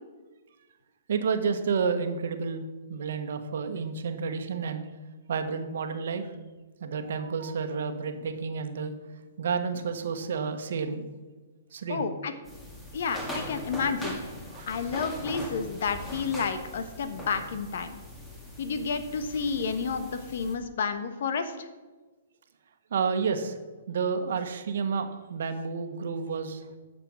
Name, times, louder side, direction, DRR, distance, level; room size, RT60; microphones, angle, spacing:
voice 1, 1.1-2.6 2.9-4.8 5.3-6.3 6.8-8.9 9.4-11.1 11.7-12.1 14.5-14.7 22.9-23.6 23.9-26.7, right 5 dB, 70° right, 7 dB, 1.3 m, -30 dB
voice 2, 11.9-12.3 12.9-14.2 14.7-18.0 18.6-21.7, left 5 dB, 65° left, 9 dB, 1.2 m, -30 dB
sound 1, 12.5-20.6, equal, 10° left, 1.9 m, -40 dB
10.0 x 6.8 x 6.2 m, 1.3 s
hypercardioid pair, 145°, 0 cm